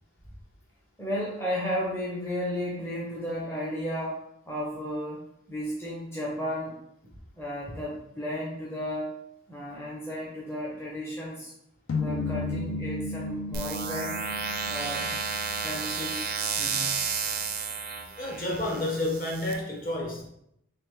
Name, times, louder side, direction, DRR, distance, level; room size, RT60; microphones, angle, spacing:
voice 1, 1.0-4.2 4.5-6.8 7.4-9.1 9.5-11.5 11.9-14.2 14.7-15.1 15.6-16.9, equal, 10° left, -5 dB, 0.6 m, -34 dB
sound 1, 11.9-16.3, left 3 dB, 80° left, 0.6 m, -34 dB
sound 2, 13.5-19.5, right 5 dB, 45° right, 0.4 m, -32 dB
voice 2, 18.2-20.3, left 1 dB, 40° left, -2 dB, 1.0 m, -30 dB
3.3 x 3.3 x 3.2 m, 0.74 s
head